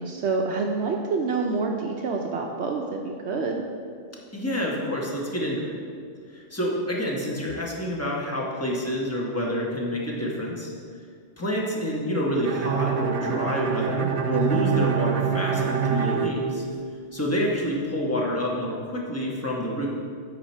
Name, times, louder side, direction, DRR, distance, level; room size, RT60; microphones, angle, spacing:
voice 1, 0.0-3.7, right 4 dB, 65° right, 2 dB, 0.8 m, -27 dB
voice 2, 4.3-5.8 6.3-10.7 11.4-16.6 17.1-19.9, equal, 15° left, -3 dB, 1.0 m, -28 dB
Bowed string instrument, 12.4-17.2, right 7 dB, 85° right, 0.3 m, -26 dB
8.9 x 4.7 x 4.3 m, 2.2 s
omnidirectional pair, 1.3 m